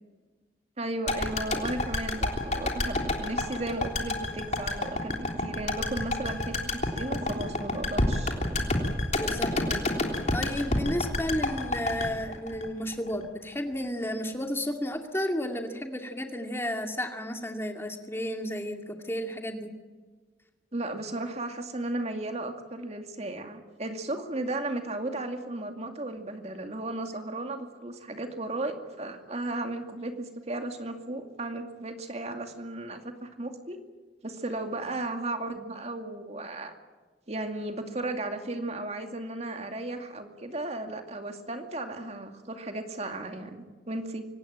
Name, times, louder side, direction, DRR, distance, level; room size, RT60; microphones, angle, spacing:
voice 1, 0.8-8.4 20.7-33.8 34.2-36.7 37.3-44.3, right 2 dB, 40° right, 6 dB, 2.4 m, -35 dB
sound 1, 1.1-13.2 13.5-13.6, left 2 dB, 40° left, 3.4 m, -29 dB
voice 2, 9.2-9.9 10.3-19.7, left 1 dB, 15° left, 4 dB, 2.3 m, -32 dB
24.5 x 18.5 x 8.8 m, 1.4 s
head